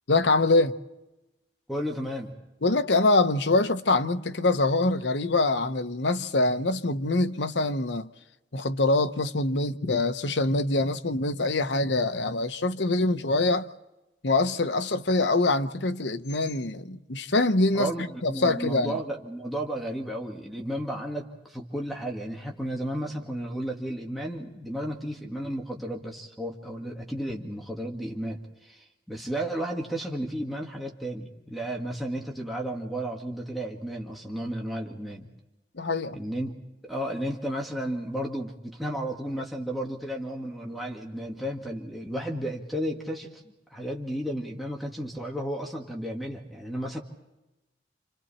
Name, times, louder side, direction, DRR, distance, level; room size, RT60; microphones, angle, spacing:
voice 1, 0.1-0.7 2.6-8.1 8.5-13.7 14.2-17.9 18.2-18.9 35.8-36.2, left 2 dB, 80° left, 1.0 m, -24 dB
voice 2, 1.7-2.4 17.7-35.3 36.1-36.6 36.8-47.0, right 1 dB, ahead, 2.1 m, -33 dB
29.0 x 28.0 x 4.3 m
head